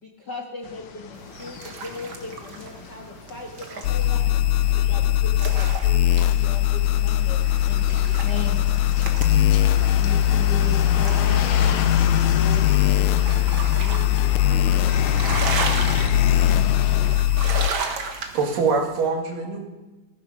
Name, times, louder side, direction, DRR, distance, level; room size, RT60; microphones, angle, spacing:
voice 1, 0.0-4.4 4.8-8.6, left 3 dB, 40° left, 1 dB, 1.8 m, -38 dB
sound 1, 0.6-17.2, left 7 dB, 60° left, 2.0 m, -32 dB
sound 2, 1.1-19.1, right 4 dB, 50° right, 1.7 m, -36 dB
sound 3, 3.8-17.7, left 12 dB, 80° left, 2.2 m, -20 dB
voice 2, 10.0-16.0, right 2 dB, 25° right, 1 dB, 2.2 m, -37 dB
voice 3, 17.7-19.6, right 4 dB, 80° right, 2 dB, 3.6 m, -25 dB
15.5 x 15.0 x 6.0 m, 1.1 s
omnidirectional pair, 3.8 m